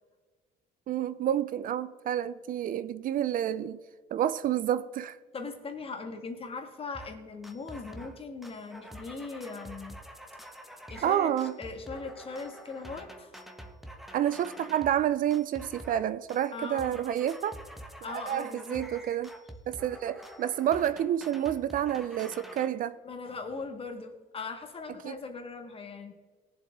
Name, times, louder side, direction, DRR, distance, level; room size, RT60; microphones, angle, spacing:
voice 1, 0.9-3.8 4.1-5.2 11.0-11.5 14.1-17.6 18.1-19.3 19.7-23.0 25.0-25.2, right 11 dB, 55° right, 0.5 m, -29 dB
voice 2, 5.3-10.0 10.9-11.3 11.6-13.4 16.5-17.0 18.0-18.9 23.0-26.1, left 4 dB, 35° left, 1.7 m, -40 dB
sound 1, 6.9-7.2 7.4-8.2 8.4-15.0 15.3-16.0 16.3-22.7, equal, ahead, 1.1 m, -47 dB
19.0 x 7.4 x 3.6 m
cardioid pair, 110°, 17 cm